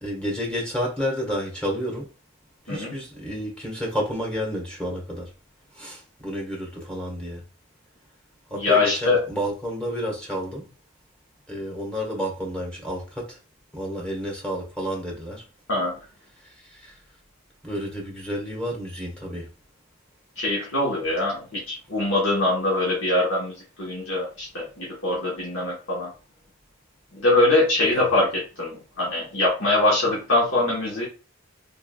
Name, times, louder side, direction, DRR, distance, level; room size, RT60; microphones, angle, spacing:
voice 1, 0.0-2.1 2.6-5.3 5.7-7.4 8.5-10.7 11.5-13.4 13.7-15.5 16.4-16.9 17.6-19.5 27.9-28.1, equal, 5° left, 1.4 m, -30 dB
voice 2, 8.5-9.2 15.7-16.0 20.4-26.1 27.1-28.3 28.6-31.0, left 2 dB, 80° left, 1.4 m, -23 dB
3.6 x 3.6 x 2.3 m
head